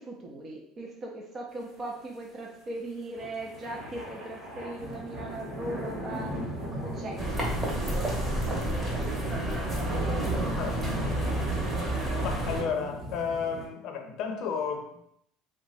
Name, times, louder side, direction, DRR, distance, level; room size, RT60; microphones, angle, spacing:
voice 1, 0.0-6.3 6.7-10.5, right 2 dB, 30° right, -1 dB, 0.6 m, -39 dB
sound 1, 3.1-13.7, equal, 50° right, 1.3 m, -39 dB
sound 2, 7.2-12.6, right 1 dB, 15° right, 1.0 m, -29 dB
voice 2, 12.2-15.0, left 6 dB, 60° left, 4 dB, 0.6 m, -32 dB
2.9 x 2.2 x 4.1 m, 0.75 s
cardioid pair, 130°, 0 cm